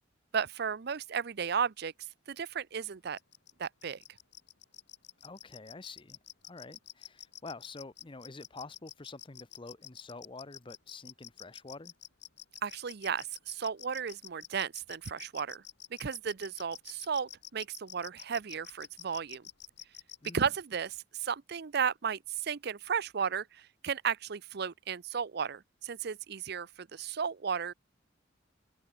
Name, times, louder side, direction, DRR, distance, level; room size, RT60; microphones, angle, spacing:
voice 1, 0.3-1.9 2.3-3.2 3.6-4.0 12.6-15.6 16.0-19.5 20.3-27.7, right 6 dB, 60° right, 0.6 m, -34 dB
sound 1, 3.2-20.3, left 12 dB, 65° left, 2.8 m, -48 dB
voice 2, 5.2-6.2 6.4-11.9 20.2-20.5, left 3 dB, 25° left, 0.8 m, -47 dB
head